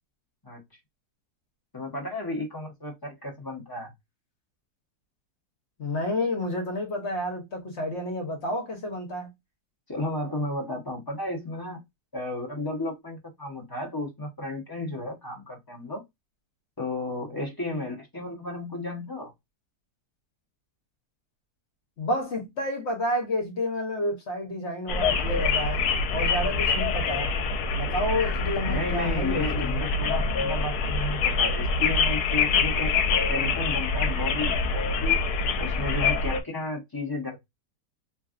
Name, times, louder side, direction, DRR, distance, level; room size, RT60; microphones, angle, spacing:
voice 1, 1.7-3.9 9.9-11.8 12.1-16.0 16.8-19.3 28.7-33.0 33.3-35.2 35.6-37.4, left 2 dB, 30° left, 0.4 m, -33 dB
voice 2, 5.8-9.3 22.0-27.3 27.8-29.9, left 1 dB, 50° left, 1.1 m, -30 dB
sound 1, 24.9-36.4, left 4 dB, 75° left, 1.1 m, -25 dB
3.2 x 2.6 x 2.4 m
omnidirectional pair, 1.7 m